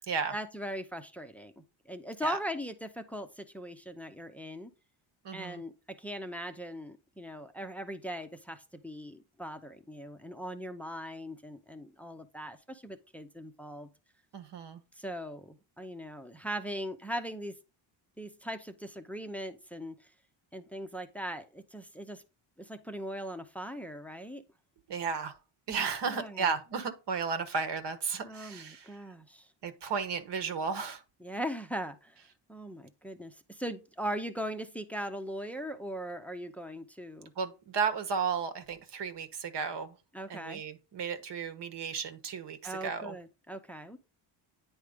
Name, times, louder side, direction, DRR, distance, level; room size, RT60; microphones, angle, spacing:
voice 1, 0.3-4.7 5.3-5.7 6.0-13.9 15.0-17.6 18.2-19.9 20.5-22.2 22.6-24.4 26.1-26.6 28.2-29.5 31.2-32.2 32.5-37.3 40.1-40.6 42.6-44.0, equal, 5° left, 0.6 m, -40 dB
voice 2, 5.2-5.6 14.3-14.8 24.9-25.4 25.7-29.0 29.6-31.0 37.4-40.0 40.3-43.2, right 5 dB, 55° right, 1.2 m, -34 dB
9.4 x 3.2 x 5.0 m
cardioid pair, 110°, 49 cm